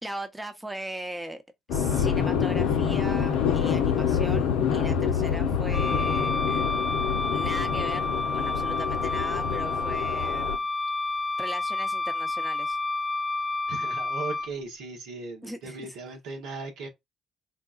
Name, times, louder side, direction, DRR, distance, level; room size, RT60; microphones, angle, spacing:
voice 1, 0.0-1.4 1.7-6.7 7.3-10.7 11.4-12.8 15.4-15.9, right 1 dB, 10° right, 0.8 m, -39 dB
sound 1, 1.7-10.6, left 7 dB, 70° left, 0.6 m, -26 dB
Wind instrument woodwind instrument, 5.7-14.5, left 3 dB, 25° left, 0.4 m, -29 dB
voice 2, 13.7-16.9, right 3 dB, 70° right, 1.0 m, -37 dB
3.9 x 2.3 x 2.4 m
hypercardioid pair, 50°, 0 cm